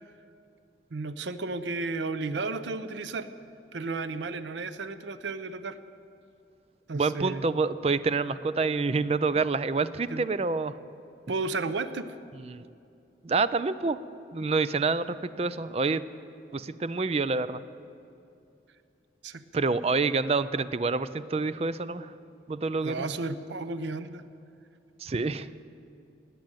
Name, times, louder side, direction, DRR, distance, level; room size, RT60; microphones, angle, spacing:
voice 1, 0.9-3.3 3.7-5.8 6.9-7.5 10.1-10.3 11.3-12.1 19.2-19.6 22.8-24.2, right 3 dB, 85° right, 12 dB, 0.7 m, -33 dB
voice 2, 6.9-10.7 12.5-12.6 13.2-14.0 14.3-16.0 16.5-17.6 19.5-22.1 22.5-23.0 25.0-25.5, right 4 dB, 35° right, 14 dB, 0.4 m, -27 dB
18.0 x 7.7 x 9.0 m, 2.6 s
head